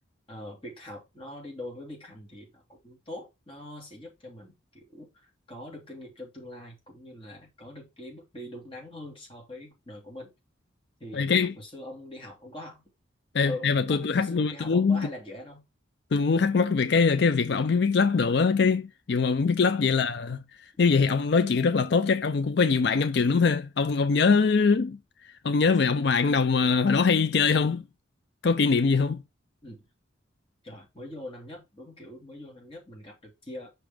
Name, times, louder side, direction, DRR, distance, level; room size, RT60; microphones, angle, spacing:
voice 1, 0.3-10.3 11.0-12.8 13.4-15.7 29.6-29.8 30.6-33.7, left 1 dB, 25° left, 3.0 m, -43 dB
voice 2, 11.1-11.5 13.3-15.1 16.1-20.4 20.8-25.0 25.4-27.8 28.4-29.2, left 5 dB, 55° left, 0.4 m, -23 dB
5.9 x 5.1 x 3.5 m
head